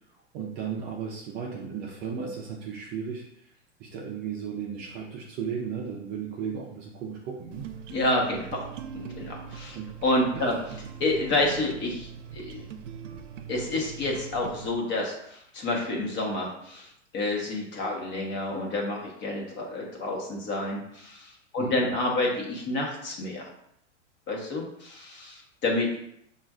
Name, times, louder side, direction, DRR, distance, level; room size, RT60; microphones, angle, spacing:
voice 1, 0.3-3.5 3.8-7.7 9.7-9.9 10.3-10.5 21.6-21.9, right 6 dB, 30° right, -1 dB, 0.5 m, -35 dB
sound 1, 7.5-14.7, right 7 dB, 85° right, 0.5 m, -41 dB
voice 2, 7.9-8.7 9.2-9.8 10.0-10.6 11.0-12.5 13.0-13.1 13.5-23.5 24.3-26.0, left 2 dB, 30° left, -1 dB, 1.0 m, -29 dB
6.0 x 2.4 x 2.4 m, 0.73 s
hypercardioid pair, 135°, 37 cm